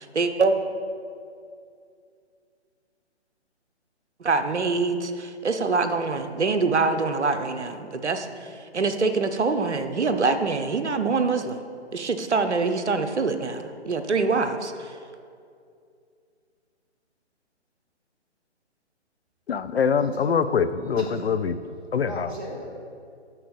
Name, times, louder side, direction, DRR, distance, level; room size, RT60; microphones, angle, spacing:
voice 1, 0.1-0.6 4.2-11.6 11.9-15.0, right 4 dB, 75° right, 8 dB, 0.9 m, -25 dB
voice 2, 19.5-21.6 21.9-22.3, left 6 dB, 60° left, 13 dB, 0.5 m, -24 dB
voice 3, 20.0-20.3 21.0-21.3 22.0-22.7, right 1 dB, 10° right, -2 dB, 0.5 m, -36 dB
8.7 x 6.4 x 5.3 m, 2.4 s
figure-of-eight pair, 140°, 35 cm